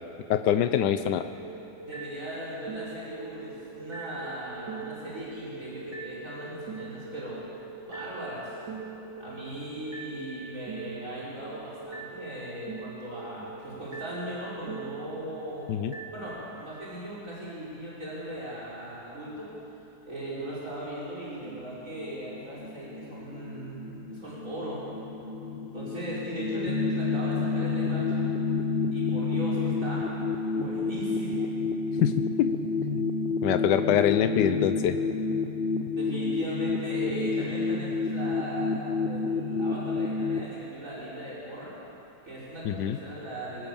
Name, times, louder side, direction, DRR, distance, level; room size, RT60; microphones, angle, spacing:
voice 1, 0.3-1.2 15.7-15.9 32.0-32.5 32.8-33.0 33.4-35.0 42.6-43.0, left 9 dB, 85° left, 10 dB, 1.3 m, -24 dB
sound 1, 0.8-16.2, right 4 dB, 85° right, 2.9 m, -42 dB
voice 2, 1.8-7.4 7.8-8.6 9.2-15.7 16.1-19.5 20.1-24.8 25.7-28.2 28.9-30.1 30.4-31.5 36.0-41.7 42.2-43.7, right 1 dB, 50° right, -7 dB, 5.9 m, -38 dB
sound 2, 21.4-40.5, left 4 dB, 45° left, 0.8 m, -30 dB
25.0 x 19.0 x 7.1 m, 3.0 s
omnidirectional pair, 1.8 m